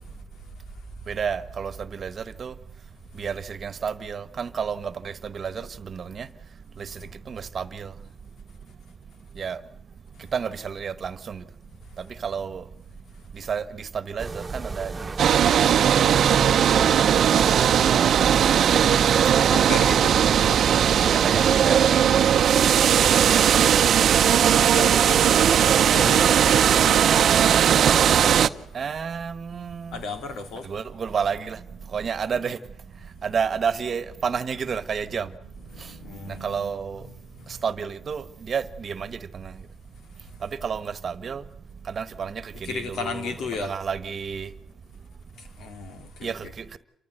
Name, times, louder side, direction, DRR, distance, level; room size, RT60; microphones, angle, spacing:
voice 1, 1.1-2.5 3.2-6.3 6.8-6.9 7.3-7.9 9.4-9.6 10.3-11.4 12.2-12.6 13.3-15.1 17.2-17.6 18.3-18.8 19.0-19.6 21.1-22.0 23.3-23.8 28.7-30.0 30.6-31.6 31.9-32.6 33.2-35.3 36.4-37.0 37.6-39.5 40.6-41.4 41.9-43.3 43.6-44.5 46.2-46.8, right 6 dB, 45° right, 1.3 m, -31 dB
sound 1, 14.2-21.8, right 3 dB, 25° right, 1.4 m, -34 dB
sound 2, 15.2-28.5, right 9 dB, 65° right, 0.8 m, -18 dB
voice 2, 19.5-20.2 24.6-25.4 25.9-27.1 29.9-30.8 33.1-33.4 35.5-37.6 40.2-40.3 42.6-43.8 45.4-46.5, left 4 dB, 75° left, 2.7 m, -35 dB
29.0 x 14.5 x 8.0 m
cardioid pair, 90°, 0 cm